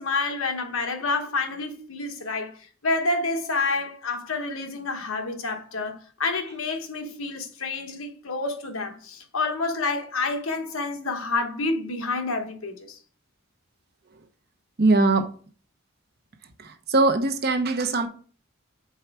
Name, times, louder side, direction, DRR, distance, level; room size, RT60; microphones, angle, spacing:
voice 1, 0.0-2.6 2.8-13.0, left 3 dB, 90° left, 1.2 m, -28 dB
voice 2, 14.8-15.3 16.6-18.1, right 2 dB, 50° right, 0.8 m, -21 dB
4.7 x 4.4 x 5.9 m
head